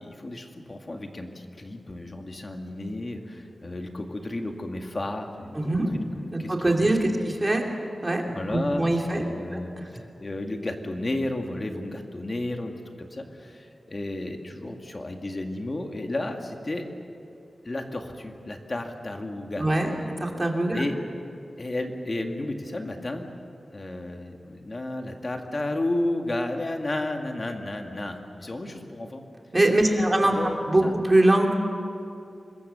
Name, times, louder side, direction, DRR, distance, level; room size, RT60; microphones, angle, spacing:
voice 1, 0.0-6.0 6.4-6.6 7.1-7.3 8.3-9.7 10.2-16.9 17.6-19.7 20.7-21.0 21.6-23.2 23.7-29.2 29.8-30.9, left 1 dB, 30° left, 4 dB, 2.1 m, -32 dB
voice 2, 5.5-5.9 6.3-7.6 8.0-9.2 9.5-9.9 19.6-20.8 29.5-30.3 30.7-31.5, right 1 dB, 20° right, 1 dB, 2.8 m, -23 dB
26.0 x 21.5 x 6.9 m, 2.5 s
wide cardioid pair, 140°, 0 cm